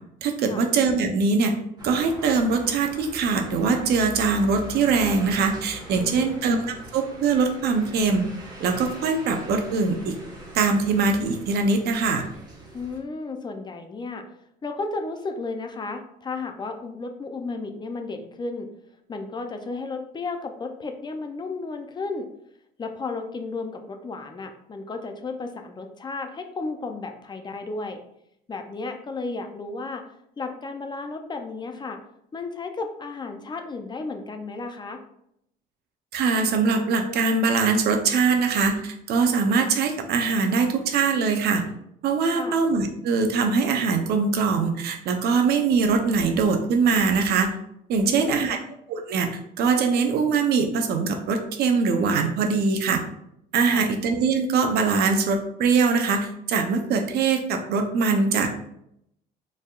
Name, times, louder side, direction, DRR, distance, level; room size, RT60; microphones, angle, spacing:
voice 1, 0.2-1.5 1.8-6.6 6.9-8.2 8.6-10.1 10.5-12.3 36.1-41.6 42.0-47.5 47.9-48.6 48.9-49.3 49.6-53.0 53.5-58.5, right 4 dB, 70° right, 5 dB, 0.7 m, -22 dB
sound 1, 1.8-13.0, right 1 dB, 25° right, 1.1 m, -42 dB
voice 2, 5.9-6.4 12.7-14.2 14.6-18.7 19.1-22.3 22.8-28.0 28.5-30.0 30.4-32.0 32.3-35.0 42.3-42.6 48.0-48.6 53.6-53.8, left 3 dB, 25° left, 6 dB, 0.5 m, -33 dB
4.3 x 3.5 x 2.4 m, 0.75 s
cardioid pair, 110°, 17 cm